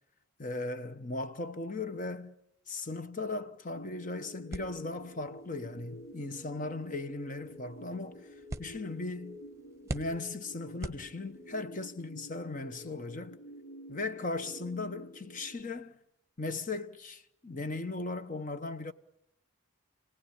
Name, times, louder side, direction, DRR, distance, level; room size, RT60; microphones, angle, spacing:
voice 1, 0.4-2.3 2.7-8.3 8.6-9.4 9.9-13.4 13.9-16.0 16.4-18.9, left 3 dB, 40° left, 1.0 m, -37 dB
sound 1, 3.7-15.6, right 1 dB, 80° left, 4.1 m, -49 dB
sound 2, 4.5-11.6, right 1 dB, 15° right, 1.1 m, -46 dB
29.5 x 18.5 x 9.9 m
head